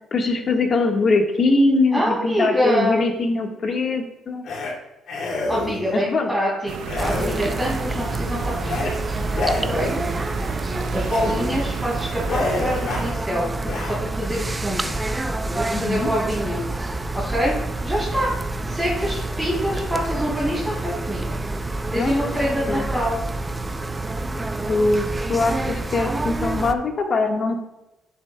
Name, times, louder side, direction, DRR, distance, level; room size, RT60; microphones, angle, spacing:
voice 1, 0.1-4.4 5.9-6.3 11.3-11.4 15.7-16.1 21.9-22.1 22.7-22.9 24.7-27.6, left 3 dB, 50° left, 3 dB, 1.5 m, -22 dB
voice 2, 1.9-3.0 5.5-6.7 7.0-9.2 9.7-10.0 10.9-13.5 13.8-14.9 15.4-16.6 17.1-17.5 17.8-18.3 18.6-21.2 21.9-23.2, equal, ahead, -8 dB, 3.1 m, -25 dB
sound 1, 4.4-4.7 5.1-6.0 6.8-7.7 8.6-8.9 9.3-10.2 11.0-11.3 11.7-11.9 12.2-13.1 13.6-14.0, left 3 dB, 70° left, 2.7 m, -28 dB
sound 2, 6.7-13.1, right 8 dB, 75° right, 0.5 m, -33 dB
sound 3, 7.0-26.7, right 2 dB, 20° right, 0.6 m, -28 dB
11.0 x 7.2 x 2.3 m, 0.95 s
cardioid pair, 90°, 0 cm